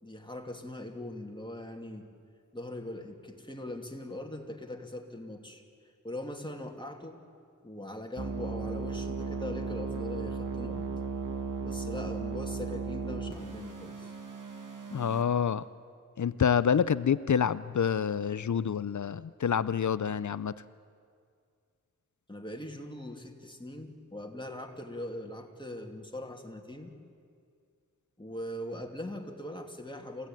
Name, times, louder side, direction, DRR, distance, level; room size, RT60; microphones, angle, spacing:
voice 1, 0.0-2.1 2.5-5.6 6.0-7.2 7.6-10.9 11.6-14.1 22.3-26.9 28.2-30.3, left 1 dB, 15° left, 2 dB, 2.8 m, -41 dB
sound 1, 8.2-15.2, right 5 dB, 70° right, 2.3 m, -36 dB
voice 2, 14.9-15.7 16.2-20.5, left 7 dB, 65° left, 16 dB, 0.6 m, -27 dB
29.0 x 16.5 x 9.1 m, 2.2 s
wide cardioid pair, 60°, 32 cm